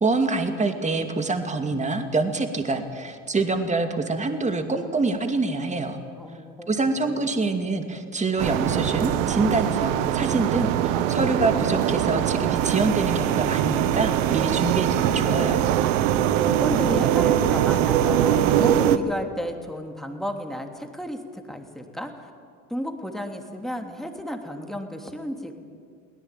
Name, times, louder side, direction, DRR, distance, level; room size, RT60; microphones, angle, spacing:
voice 1, 0.0-6.0 6.7-15.6, right 3 dB, 20° right, 6 dB, 2.4 m, -25 dB
voice 2, 6.2-6.7 7.0-7.2 16.4-22.3 22.7-25.5, equal, ahead, 3 dB, 3.0 m, -33 dB
sound 1, 8.4-19.0, right 10 dB, 80° right, 1.2 m, -22 dB
23.0 x 17.5 x 9.1 m, 2.1 s
hypercardioid pair, 85°, 38 cm